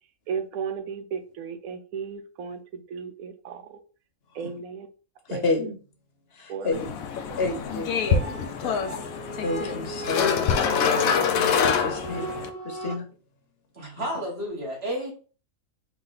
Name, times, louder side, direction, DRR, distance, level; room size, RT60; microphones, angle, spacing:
voice 1, 0.3-3.6 4.4-4.9 5.3-5.4 6.5-6.7 8.1-8.2, right 6 dB, 80° right, 1.0 m, -34 dB
voice 2, 5.3-5.8 6.3-6.9 7.4-12.3 12.6-13.1 14.0-14.1, left 3 dB, 50° left, 1.0 m, -31 dB
sound 1, 6.7-12.5, left 6 dB, 75° left, 1.0 m, -26 dB
sound 2, 7.6-12.9, left 3 dB, 5° left, 0.9 m, -35 dB
voice 3, 13.8-15.1, equal, 45° right, 1.8 m, -31 dB
4.7 x 2.5 x 3.9 m
omnidirectional pair, 1.5 m